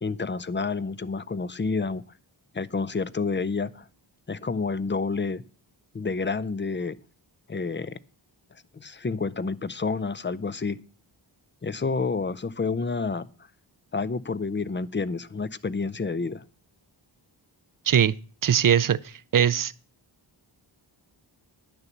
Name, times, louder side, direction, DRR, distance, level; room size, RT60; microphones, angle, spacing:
voice 1, 0.0-2.0 2.5-3.9 4.3-5.4 5.9-7.0 7.5-8.0 8.7-10.8 11.6-13.3 13.9-16.4, left 4 dB, 25° left, 0.5 m, -29 dB
voice 2, 18.4-19.7, right 9 dB, 45° right, 0.5 m, -21 dB
10.5 x 6.8 x 7.2 m
wide cardioid pair, 85°, 47 cm